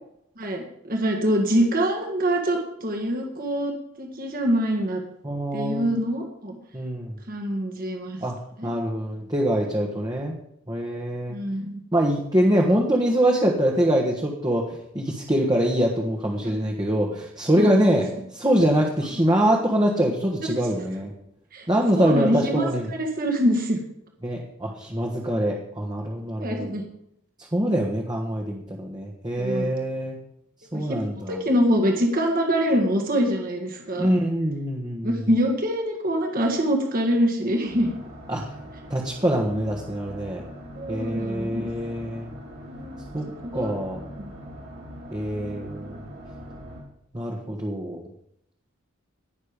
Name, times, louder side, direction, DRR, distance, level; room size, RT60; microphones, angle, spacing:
voice 1, 0.4-3.7 4.0-5.0 5.5-6.5 7.3-8.2 8.6-8.7 11.3-11.7 16.4-16.5 17.6-18.0 21.5-21.7 21.9-23.8 26.4-26.8 29.4-29.7 30.7-31.0 31.3-34.1 35.0-38.0 40.7-41.7 42.8-43.0 43.4-43.7, equal, 40° right, 2 dB, 1.8 m, -24 dB
voice 2, 5.2-5.9 6.7-7.1 8.2-10.3 10.7-11.4 11.9-21.1 21.7-22.9 24.2-26.7 27.5-30.2 30.7-31.4 34.0-35.3 38.3-38.4 38.9-40.4 40.9-42.4 43.1-43.2 43.5-44.0 45.1-46.0 47.1-48.0, right 1 dB, 20° right, -1 dB, 1.4 m, -24 dB
sound 1, 37.7-46.8, equal, 75° right, 4.6 m, -41 dB
18.5 x 6.6 x 5.2 m, 0.75 s
head